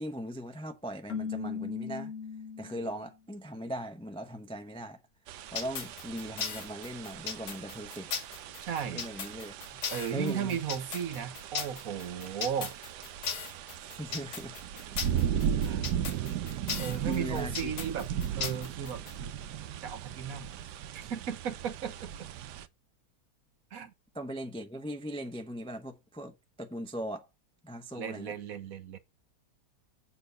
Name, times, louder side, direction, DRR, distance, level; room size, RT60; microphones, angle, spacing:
voice 1, 0.0-2.1 2.6-5.0 5.5-8.1 8.9-9.8 10.1-10.6 13.8-14.6 14.9-15.1 17.0-17.7 24.1-27.3 27.6-28.3, equal, 5° left, 0.4 m, -39 dB
Keyboard (musical), 1.1-3.1, left 6 dB, 55° left, 1.2 m, -37 dB
sound 1, 5.3-22.7, right 9 dB, 80° right, 1.3 m, -37 dB
sound 2, 5.6-19.1, left 6 dB, 75° left, 1.8 m, -37 dB
voice 2, 8.6-9.0 9.9-12.7 15.6-15.8 16.8-18.1 18.4-19.3 19.8-20.5 21.1-22.3 23.7-23.9 27.9-29.0, right 8 dB, 60° right, 1.3 m, -35 dB
7.7 x 4.0 x 6.8 m
omnidirectional pair, 1.8 m